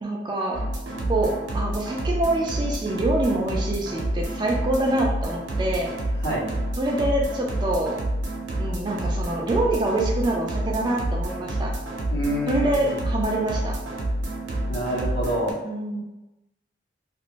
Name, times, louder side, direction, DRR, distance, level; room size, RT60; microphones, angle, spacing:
voice 1, 0.0-0.6 1.1-5.9 6.8-7.9 8.6-11.7 12.5-13.8 15.6-16.0, right 1 dB, 25° right, -1 dB, 0.3 m, -25 dB
sound 1, 0.5-15.5, right 1 dB, 80° right, 0.7 m, -28 dB
voice 2, 12.1-12.8 14.7-15.5, right 1 dB, 70° left, -5 dB, 1.0 m, -26 dB
2.5 x 2.4 x 3.0 m, 1.0 s
head